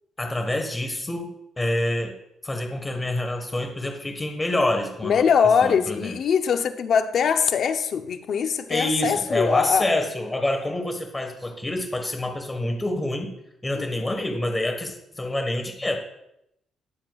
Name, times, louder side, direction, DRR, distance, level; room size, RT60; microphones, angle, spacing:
voice 1, 0.2-1.3 1.6-2.1 2.4-5.2 5.6-6.1 8.7-13.3 13.6-16.0, left 1 dB, 15° left, 1.4 m, -27 dB
voice 2, 5.0-9.9 13.7-14.0, left 7 dB, 60° left, 0.7 m, -22 dB
18.5 x 7.3 x 2.4 m
cardioid pair, 90°, 0 cm